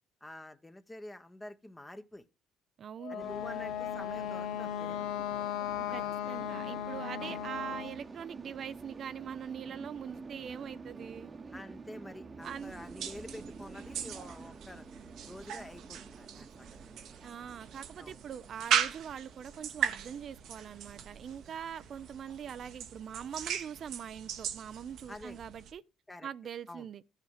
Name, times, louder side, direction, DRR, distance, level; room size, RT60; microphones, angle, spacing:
voice 1, 0.2-2.2 3.1-5.3 5.9-6.1 7.2-7.4 11.5-14.9 15.3-16.8 18.0-18.2 25.1-25.4 26.1-26.3 26.7-26.9, left 1 dB, 15° left, 0.8 m, -48 dB
voice 2, 2.8-3.3 5.8-11.3 12.4-12.7 17.2-25.8 26.2-27.0, right 8 dB, 55° right, 0.4 m, -43 dB
Wind instrument woodwind instrument, 3.0-8.0, left 10 dB, 85° left, 0.6 m, -37 dB
sound 1, 3.2-22.7, right 4 dB, 35° right, 1.0 m, -50 dB
sound 2, 12.4-25.7, right 9 dB, 70° right, 0.9 m, -38 dB
13.5 x 5.7 x 4.7 m
supercardioid pair, 75°, 0 cm